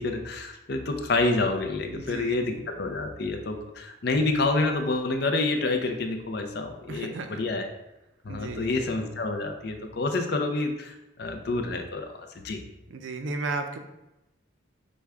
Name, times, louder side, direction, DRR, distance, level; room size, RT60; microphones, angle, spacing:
voice 1, 0.0-7.7 8.2-12.1 12.3-12.6, left 2 dB, 55° left, 5 dB, 0.5 m, -28 dB
voice 2, 1.9-2.6 6.9-7.4 8.3-9.0 12.9-13.8, right 3 dB, 70° right, 6 dB, 0.5 m, -35 dB
6.1 x 2.2 x 3.5 m, 0.94 s
head